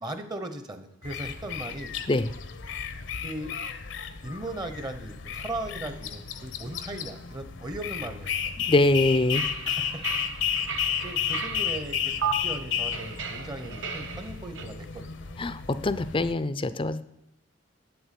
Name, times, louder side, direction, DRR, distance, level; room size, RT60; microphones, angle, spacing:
voice 1, 0.0-1.9 3.2-3.5 4.2-8.6 9.6-10.1 11.0-15.4, right 1 dB, 20° right, 9 dB, 0.8 m, -38 dB
sound 1, 1.0-16.3, left 8 dB, 70° left, 0.9 m, -33 dB
voice 2, 8.6-9.5 15.4-17.0, left 2 dB, 25° left, 14 dB, 0.5 m, -24 dB
sound 2, 9.3-11.7 12.2-12.3 12.9-14.7, right 6 dB, 75° right, 1.4 m, -35 dB
8.8 x 7.9 x 8.3 m, 0.81 s
head